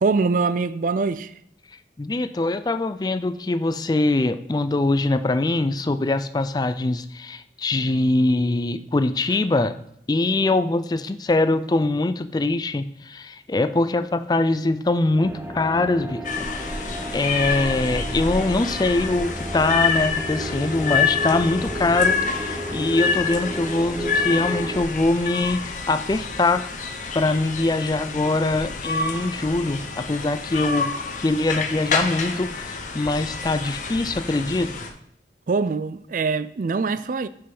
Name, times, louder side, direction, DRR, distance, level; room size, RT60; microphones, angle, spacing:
voice 1, 0.0-1.3 35.5-37.3, right 4 dB, 50° right, 0.4 m, -23 dB
voice 2, 2.0-9.7 10.1-26.6 27.1-34.7, left 2 dB, 25° left, 0.4 m, -23 dB
sound 1, 15.2-24.8, right 1 dB, 15° right, 0.7 m, -33 dB
sound 2, 16.2-34.9, left 5 dB, 45° left, 0.9 m, -28 dB
6.4 x 5.5 x 5.9 m
head